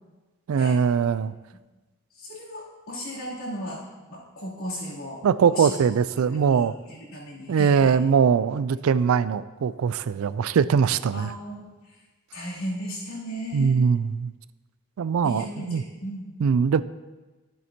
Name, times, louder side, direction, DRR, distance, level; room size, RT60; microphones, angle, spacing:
voice 1, 0.5-1.3 5.2-6.8 7.5-11.3 13.5-14.3 15.0-15.8 16.4-16.8, right 6 dB, 75° right, 16 dB, 0.3 m, -21 dB
voice 2, 2.1-3.8 4.1-5.2 5.5-5.7 6.3-8.0 11.1-11.7 12.3-13.8 15.2-16.3, equal, 75° left, -7 dB, 3.1 m, -35 dB
13.5 x 7.7 x 2.9 m, 1.2 s
head